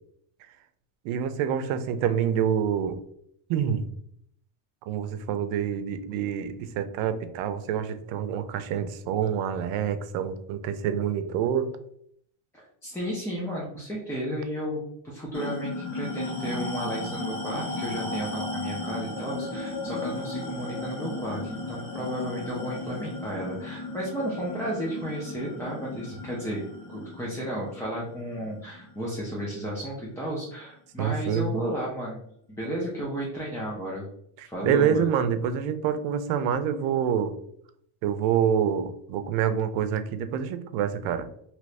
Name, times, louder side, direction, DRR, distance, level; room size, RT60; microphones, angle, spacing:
voice 1, 1.0-3.0 3.5-3.9 4.9-11.7 31.0-31.5 34.4-37.3 38.0-41.3, right 8 dB, 80° right, 10 dB, 0.6 m, -27 dB
voice 2, 12.5-26.6 26.9-32.2 32.6-34.1 34.4-35.1, equal, 5° left, -5 dB, 0.3 m, -33 dB
sound 1, 15.3-30.2, left 2 dB, 55° left, 1.3 m, -35 dB
2.9 x 2.6 x 3.2 m, 0.70 s
cardioid pair, 140°, 47 cm